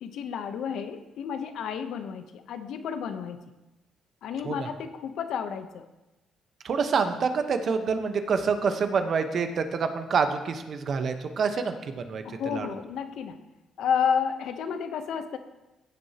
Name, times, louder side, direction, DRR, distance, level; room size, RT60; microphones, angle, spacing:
voice 1, 0.0-3.4 4.2-5.9 12.2-13.4 13.8-15.4, left 7 dB, 75° left, 9 dB, 0.8 m, -31 dB
voice 2, 6.6-12.2 12.5-12.7, right 5 dB, 55° right, 7 dB, 1.0 m, -27 dB
16.0 x 7.9 x 2.9 m, 1.0 s
cardioid pair, 90°, 0 cm